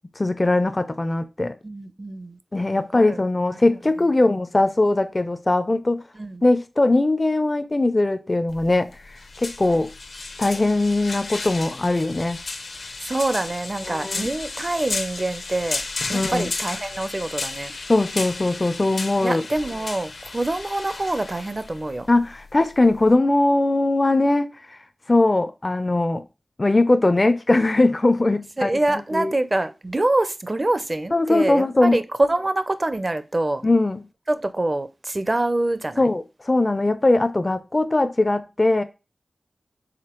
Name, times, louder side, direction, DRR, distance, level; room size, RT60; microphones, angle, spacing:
voice 1, 0.2-1.6 2.5-6.0 6.4-8.9 9.4-9.9 10.4-12.4 13.9-14.3 16.1-16.5 17.9-19.4 22.1-24.6 25.1-26.2 26.6-29.3 31.1-32.0 33.6-34.0 36.0-38.8, left 2 dB, 35° left, 0.4 m, -20 dB
voice 2, 1.6-2.4 2.7-3.2 3.5-3.8 6.1-6.4 13.0-15.8 16.1-17.7 19.2-22.1 28.6-32.0 32.3-33.6 34.3-36.1, right 2 dB, 35° right, 0.4 m, -25 dB
sound 1, 8.5-23.1, left 3 dB, 75° left, 0.6 m, -34 dB
4.9 x 3.5 x 2.9 m
wide cardioid pair, 55°, 0 cm